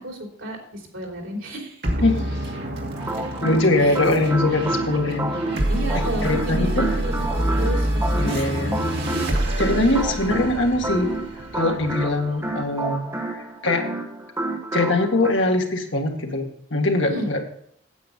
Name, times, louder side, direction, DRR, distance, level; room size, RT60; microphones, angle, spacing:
voice 1, 0.0-1.8 3.2-3.3 3.8-4.0 5.7-8.8 9.2-9.5 17.0-17.3, equal, 85° right, 1 dB, 3.2 m, -32 dB
sound 1, 1.8-12.6, right 1 dB, 55° right, 2.3 m, -27 dB
sound 2, 2.9-15.3, right 2 dB, 15° right, 1.2 m, -30 dB
voice 2, 3.4-5.3 5.9-6.9 8.2-8.7 9.6-11.2 11.5-13.9 14.7-17.4, left 2 dB, 70° left, 2 dB, 1.9 m, -22 dB
9.2 x 8.5 x 5.3 m, 0.67 s
head